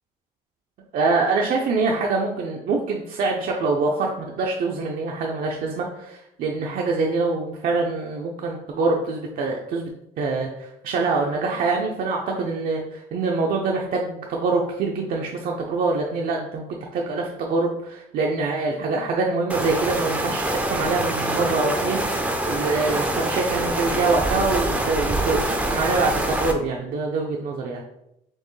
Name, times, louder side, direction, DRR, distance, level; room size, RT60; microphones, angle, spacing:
voice 1, 0.9-9.9 10.2-27.8, right 3 dB, 60° right, -1 dB, 0.6 m, -25 dB
sound 1, 19.5-26.5, right 1 dB, 5° right, 0.5 m, -25 dB
4.4 x 3.0 x 3.1 m, 0.80 s
cardioid pair, 110°, 17 cm